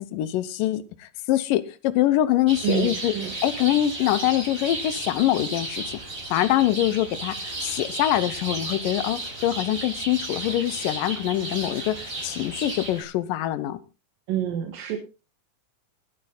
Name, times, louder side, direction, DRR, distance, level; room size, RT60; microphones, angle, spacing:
voice 1, 0.0-3.1 3.4-6.0 6.3-7.4 7.6-13.8, left 13 dB, 85° left, 15 dB, 2.5 m, -24 dB
sound 1, 2.5-13.0, right 2 dB, 25° right, 4.4 m, -34 dB
voice 2, 2.6-3.3 14.3-15.0, right 10 dB, 85° right, 5 dB, 3.2 m, -27 dB
20.5 x 8.9 x 3.9 m, 0.31 s
omnidirectional pair, 3.9 m